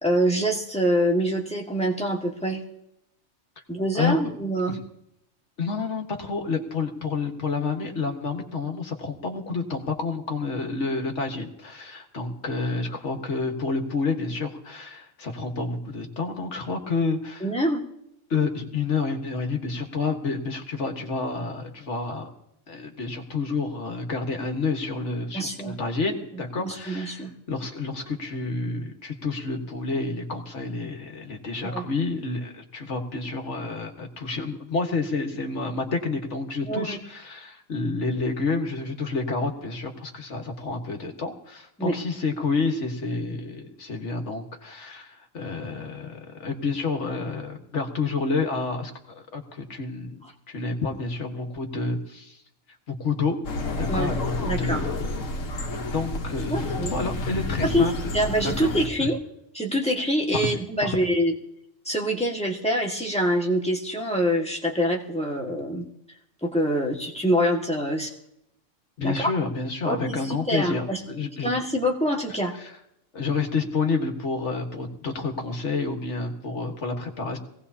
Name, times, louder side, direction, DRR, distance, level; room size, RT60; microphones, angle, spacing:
voice 1, 0.0-2.6 3.7-4.8 17.4-17.8 25.3-25.8 26.6-27.3 31.6-31.8 36.7-37.0 41.8-41.9 53.9-54.1 54.4-54.8 56.5-57.0 57.6-59.2 59.5-61.3 61.9-68.1 69.0-69.3 69.8-71.0 71.4-72.5, equal, 5° left, -1 dB, 1.8 m, -25 dB
voice 2, 5.6-17.5 18.3-22.3 22.7-52.4 53.0-53.4 53.8-55.1 55.9-57.9 58.4-58.7 59.0-59.1 60.3-60.5 60.8-61.1 69.0-71.5 72.6-72.7 73.1-77.4, left 4 dB, 65° left, 4 dB, 1.8 m, -29 dB
sound 1, 53.4-58.9, left 2 dB, 85° left, 1.6 m, -30 dB
22.0 x 17.5 x 2.8 m, 0.80 s
omnidirectional pair, 1.3 m